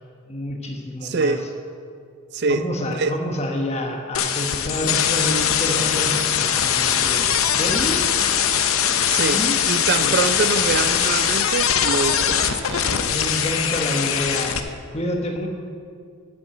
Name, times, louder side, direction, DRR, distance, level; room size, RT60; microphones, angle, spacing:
voice 1, 0.3-1.4 2.5-7.3 7.6-8.0 9.3-9.6 10.0-10.1 13.0-14.6 14.9-15.5, left 1 dB, 30° left, 2 dB, 1.3 m, -28 dB
voice 2, 1.0-1.4 2.3-3.1 9.1-12.9, right 4 dB, 50° right, 11 dB, 0.4 m, -24 dB
sound 1, 4.1-14.6, left 8 dB, 70° left, 0.7 m, -21 dB
9.3 x 8.6 x 7.6 m, 2.3 s
head